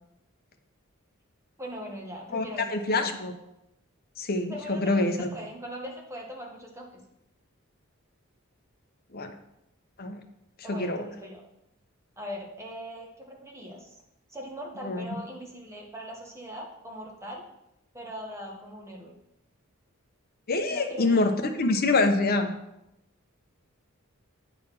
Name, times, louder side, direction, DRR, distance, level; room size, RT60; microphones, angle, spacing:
voice 1, 1.6-3.1 4.5-5.0 5.3-7.0 10.6-11.4 12.2-14.0 14.3-17.4 17.9-19.1 20.7-21.3, equal, 15° right, -1 dB, 1.4 m, -40 dB
voice 2, 2.3-3.3 4.2-5.4 9.1-9.4 10.0-10.2 10.7-11.1 14.8-15.0 20.5-22.5, left 2 dB, 45° left, 5 dB, 0.8 m, -26 dB
8.8 x 4.1 x 5.8 m, 0.85 s
head